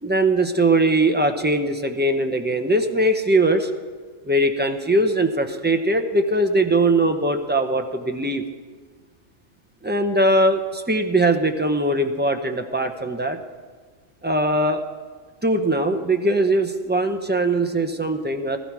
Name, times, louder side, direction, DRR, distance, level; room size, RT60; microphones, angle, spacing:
voice 1, 0.0-3.7 4.2-8.4 9.8-13.4 14.2-14.8 15.4-18.6, right 1 dB, 15° right, 6 dB, 0.4 m, -21 dB
15.5 x 15.0 x 4.7 m, 1.5 s
omnidirectional pair, 1.4 m